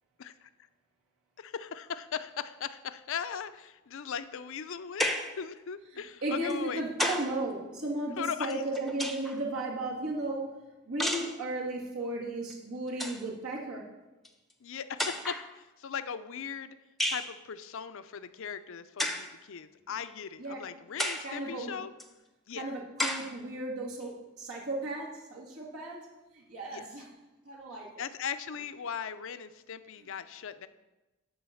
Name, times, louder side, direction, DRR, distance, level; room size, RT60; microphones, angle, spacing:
voice 1, 0.2-0.5 1.4-6.8 8.2-8.6 14.6-16.8 17.1-21.9 22.5-22.7 26.7-26.9 28.0-30.7, left 7 dB, 65° left, 12 dB, 0.5 m, -38 dB
sound 1, 5.0-5.4 6.5-7.4 8.5-9.4 11.0-11.4 12.5-12.6 12.9-13.3 14.2-14.3 15.0-15.5 17.0-17.3 19.0-19.3 20.0-20.1 21.0-21.3 22.0-22.1 23.0-23.3, left 1 dB, ahead, 0.7 m, -32 dB
voice 2, 5.9-10.5 10.9-13.8 20.4-20.6 21.2-21.8 22.6-26.1 26.3-27.1 27.5-27.9, right 2 dB, 80° right, -3 dB, 1.9 m, -35 dB
11.5 x 4.0 x 7.0 m, 1.1 s
head